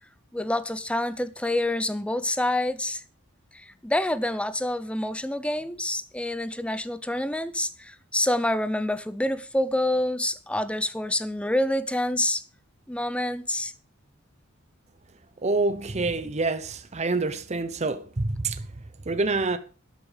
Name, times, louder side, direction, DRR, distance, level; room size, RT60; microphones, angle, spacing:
voice 1, 0.3-3.0 3.5-12.4 12.9-13.7, left 1 dB, 5° left, 0.7 m, -27 dB
voice 2, 15.4-18.6 19.1-19.6, right 3 dB, 35° right, 0.8 m, -27 dB
12.5 x 8.3 x 5.1 m
head